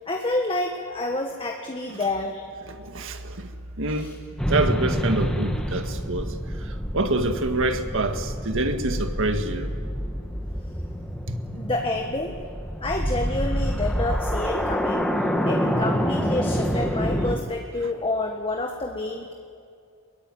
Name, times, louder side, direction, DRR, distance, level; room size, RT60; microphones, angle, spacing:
voice 1, 0.1-2.4 3.9-4.1 11.5-12.4 12.8-15.1 15.4-19.3, left 2 dB, 25° left, 1.6 m, -28 dB
voice 2, 2.7-4.1 4.5-9.7 11.3-11.6 17.8-17.9, right 2 dB, 60° right, 1.8 m, -27 dB
sound 1, 4.4-17.4, equal, 5° left, 1.8 m, -27 dB
24.0 x 22.5 x 9.3 m
head